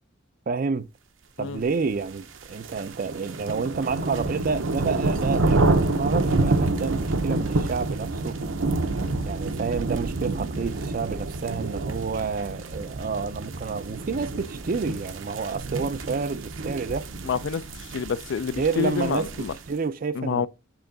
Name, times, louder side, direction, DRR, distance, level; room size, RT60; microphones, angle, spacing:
voice 1, 0.5-0.9 1.4-8.4 9.3-17.1 18.6-20.5, right 5 dB, 45° right, 0.4 m, -29 dB
sound 1, 2.2-19.7, right 2 dB, 75° right, 0.7 m, -28 dB
voice 2, 17.2-17.6 17.9-19.5 20.1-20.5, left 6 dB, 65° left, 0.4 m, -27 dB
8.0 x 3.7 x 3.9 m
head